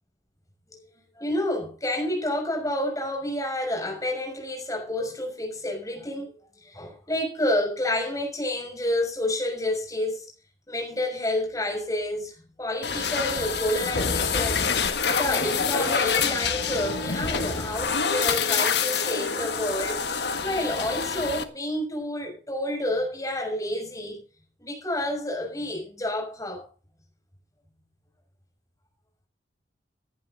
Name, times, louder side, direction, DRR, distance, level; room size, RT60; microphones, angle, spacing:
voice 1, 1.2-6.3 6.6-10.3 10.7-14.7 15.1-24.2 24.6-26.7, left 1 dB, 20° left, 6.5 m, -29 dB
sound 1, 12.8-21.4, left 5 dB, 70° left, 1.7 m, -26 dB
17.0 x 11.0 x 4.1 m
head